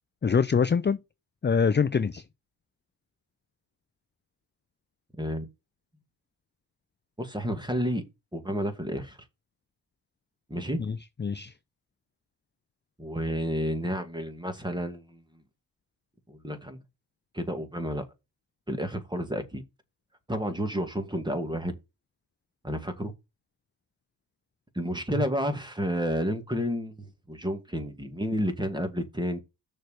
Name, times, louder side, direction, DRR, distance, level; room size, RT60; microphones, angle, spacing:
voice 1, 0.2-1.0 1.4-2.2 10.8-11.5, left 6 dB, 20° left, 0.6 m, -24 dB
voice 2, 5.2-5.5 7.2-8.0 8.3-9.2 10.5-10.8 13.0-15.2 16.3-16.8 17.3-18.0 18.7-19.6 20.3-21.7 22.6-23.1 24.7-29.4, equal, 10° right, 2.2 m, -30 dB
6.6 x 4.6 x 6.5 m
cardioid pair, 75°, 49 cm